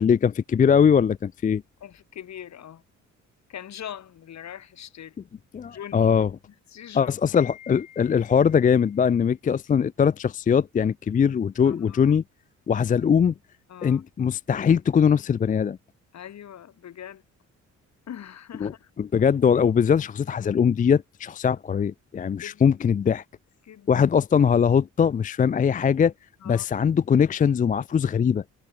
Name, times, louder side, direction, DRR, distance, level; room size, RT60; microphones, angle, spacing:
voice 1, 0.0-1.6 5.5-6.3 6.9-12.2 12.7-13.3 13.8-15.8 18.6-23.2 23.9-26.1 26.4-28.4, left 7 dB, 25° left, 0.4 m, -21 dB
voice 2, 1.8-2.8 3.5-5.2 5.7-6.1 6.7-7.1 11.6-12.1 13.7-14.0 16.1-17.2 18.1-18.9 22.4-22.6 23.6-24.0 26.4-26.9, left 10 dB, 65° left, 5.1 m, -41 dB
cardioid pair, 90°, 30 cm